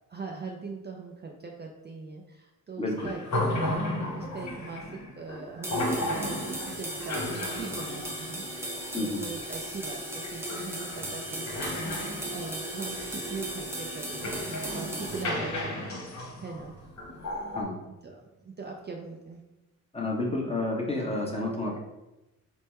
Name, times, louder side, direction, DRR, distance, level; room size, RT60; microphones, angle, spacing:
voice 1, 0.1-12.0 12.3-16.7 17.8-19.4 21.3-21.4, right 4 dB, 30° right, 0 dB, 0.5 m, -41 dB
voice 2, 2.8-3.1 8.9-9.2 17.5-17.7 19.9-21.8, left 2 dB, 15° left, -2 dB, 1.0 m, -30 dB
sound 1, 3.0-17.6, left 1 dB, 50° left, 0.9 m, -34 dB
sound 2, 5.6-15.2, right 1 dB, 5° right, 0.8 m, -37 dB
3.4 x 2.1 x 4.3 m, 0.99 s
cardioid pair, 65°, 36 cm